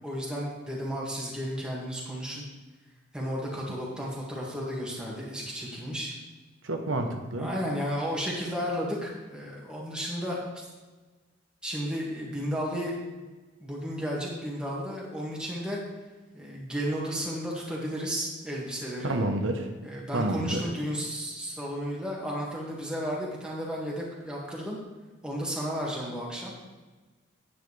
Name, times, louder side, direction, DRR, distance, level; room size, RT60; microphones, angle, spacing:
voice 1, 0.0-2.4 3.1-6.2 7.3-10.7 11.6-12.9 13.6-15.8 16.3-19.2 19.8-24.8 25.2-26.5, equal, 5° right, -4 dB, 2.0 m, -33 dB
voice 2, 6.6-7.5 19.0-19.7 20.1-20.6, right 1 dB, 80° right, 4 dB, 1.0 m, -29 dB
10.0 x 9.2 x 3.3 m, 1.3 s
head